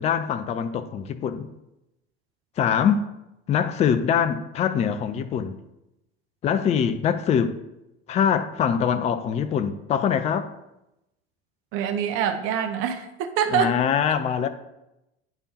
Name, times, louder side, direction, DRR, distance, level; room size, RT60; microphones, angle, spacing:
voice 1, 0.0-1.5 2.6-3.1 3.5-5.6 6.4-7.5 8.1-10.5 13.5-14.5, left 8 dB, 20° left, 0.4 m, -23 dB
voice 2, 11.7-13.7, right 8 dB, 45° right, 0.7 m, -25 dB
8.8 x 3.4 x 4.2 m
figure-of-eight pair, 70°, 31 cm